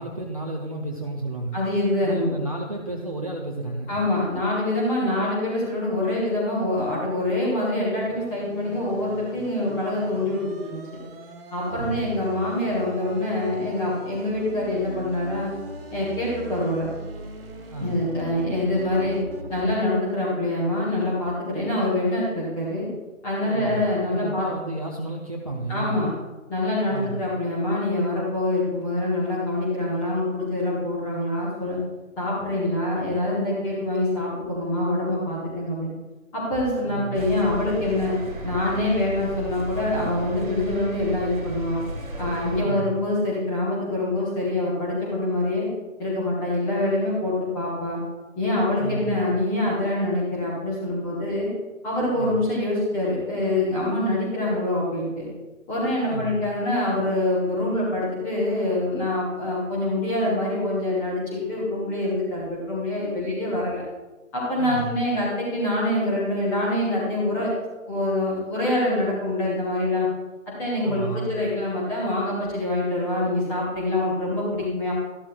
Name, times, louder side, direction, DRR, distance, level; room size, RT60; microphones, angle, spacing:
voice 1, 0.0-1.6 2.0-4.0 11.7-12.1 17.7-18.0 23.4-23.8 24.1-26.0 26.9-27.2 36.8-37.3 42.5-43.0 48.8-49.2 52.1-52.4 56.0-56.4 64.6-65.0 70.8-71.4, right 2 dB, 30° right, -1 dB, 0.6 m, -32 dB
voice 2, 1.5-2.3 3.9-10.8 11.5-15.5 15.9-16.9 17.8-19.2 19.5-22.9 23.2-24.5 25.7-26.1 26.5-31.8 32.2-35.9 36.3-38.2 38.4-41.8 42.2-45.7 46.0-48.0 48.4-51.5 51.8-55.3 55.7-63.8 64.3-67.5 67.9-70.1 70.6-74.9, left 1 dB, 5° left, -6 dB, 1.1 m, -25 dB
sound 1, 7.9-19.8, right 2 dB, 45° right, 1.4 m, -40 dB
sound 2, 37.1-42.6, right 1 dB, 85° right, 1.6 m, -34 dB
13.0 x 12.0 x 2.3 m, 1.1 s
figure-of-eight pair, 150°, 40 cm